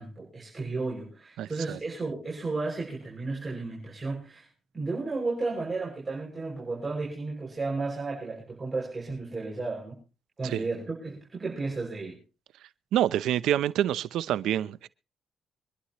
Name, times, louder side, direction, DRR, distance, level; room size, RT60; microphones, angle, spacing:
voice 1, 0.0-4.5 4.7-10.0 10.4-12.2, right 3 dB, 25° right, 6.6 m, -33 dB
voice 2, 1.4-1.8 10.4-10.6 12.9-14.9, right 11 dB, 80° right, 0.7 m, -27 dB
25.0 x 11.5 x 3.1 m
cardioid pair, 90°, 0 cm